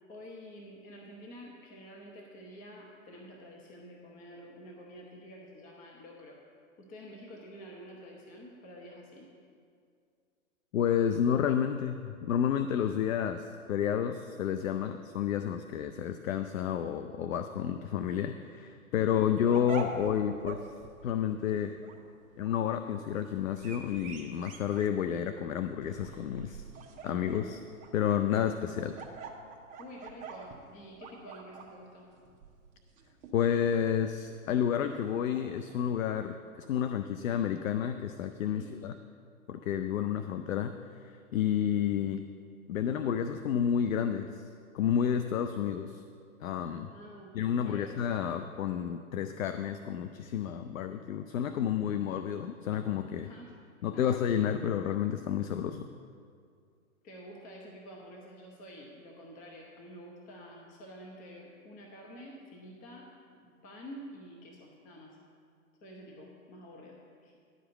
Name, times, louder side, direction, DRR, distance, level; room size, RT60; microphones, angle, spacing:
voice 1, 0.1-6.4 6.8-9.3 29.8-32.1 38.4-38.8 46.9-47.3 47.6-48.0 53.2-53.6 53.9-54.2 57.0-63.1 63.4-65.2 65.8-67.4, equal, 20° left, -1 dB, 0.9 m, -49 dB
voice 2, 10.7-20.6 21.0-21.7 22.4-26.6 27.0-27.6 27.9-28.9 33.3-38.9 39.5-40.7 41.3-42.2 42.7-44.4 44.7-46.0 46.4-46.9 47.3-53.3 53.8-55.9, left 9 dB, 65° left, 9 dB, 0.6 m, -30 dB
sound 1, 19.1-35.8, right 4 dB, 15° right, 0.8 m, -46 dB
11.0 x 5.2 x 7.8 m, 2.3 s
hypercardioid pair, 125°, 43 cm